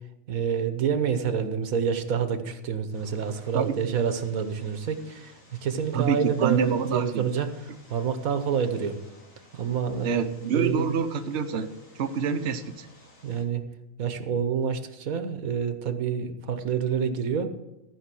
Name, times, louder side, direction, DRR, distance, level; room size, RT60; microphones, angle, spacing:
voice 1, 0.3-9.0 9.5-10.3 10.5-11.0 13.2-13.6 14.0-17.5, right 7 dB, 85° right, 10 dB, 1.5 m, -28 dB
Vehicle, 2.9-13.4, left 1 dB, 70° left, 3.2 m, -54 dB
voice 2, 3.5-3.9 5.9-7.3 10.0-11.7 11.9-12.9, right 6 dB, 55° right, 7 dB, 1.0 m, -27 dB
14.5 x 5.3 x 7.6 m, 1.0 s
omnidirectional pair, 1.4 m